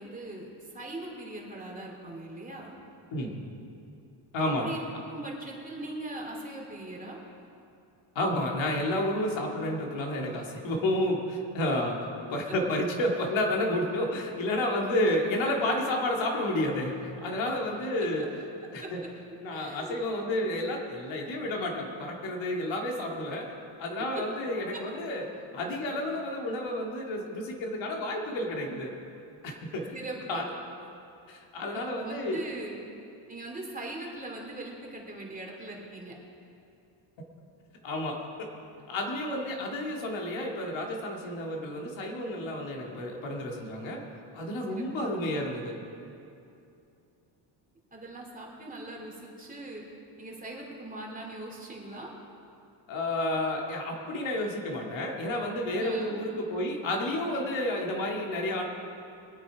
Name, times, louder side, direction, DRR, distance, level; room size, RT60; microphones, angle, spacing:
voice 1, 0.0-2.7 4.6-4.8 5.1-7.2 11.7-11.8 17.4-17.6 18.8-18.9 19.5-20.0 24.1-24.2 24.7-24.8 29.9-30.4 31.7-32.8 33.3-36.1 44.7-44.9 47.9-49.8 50.2-52.1 55.8-56.2, right 2 dB, 20° right, -2 dB, 2.8 m, -40 dB
voice 2, 4.3-4.7 8.1-12.0 12.3-18.2 18.7-19.0 19.4-23.4 23.8-25.2 25.5-28.9 29.4-29.9 30.3-30.5 31.3-32.4 37.8-38.2 38.9-44.0 44.3-45.8 52.9-58.6, left 1 dB, 75° left, 0 dB, 2.5 m, -30 dB
22.5 x 8.8 x 4.8 m, 2.7 s
cardioid pair, 130°, 46 cm